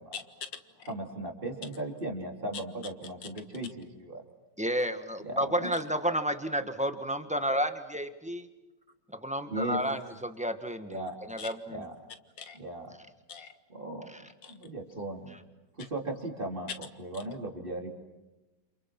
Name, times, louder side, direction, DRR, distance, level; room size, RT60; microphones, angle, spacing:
voice 1, 0.1-0.9 2.5-2.6 11.4-11.5 12.4-12.6 13.3-13.5 14.4-14.5 15.8-15.9, left 7 dB, 90° left, 9 dB, 2.3 m, -42 dB
voice 2, 0.9-4.2 5.2-5.7 9.5-9.8 10.9-11.2 11.7-11.9 12.5-12.9 13.7-14.1 14.5-15.4 15.8-16.7 17.0-17.9, right 1 dB, 30° right, 3 dB, 3.6 m, -37 dB
voice 3, 4.6-8.5 9.2-11.0 11.3-11.8 14.1-14.2, equal, 5° right, 8 dB, 1.3 m, -31 dB
29.0 x 28.0 x 6.1 m, 1.1 s
omnidirectional pair, 1.9 m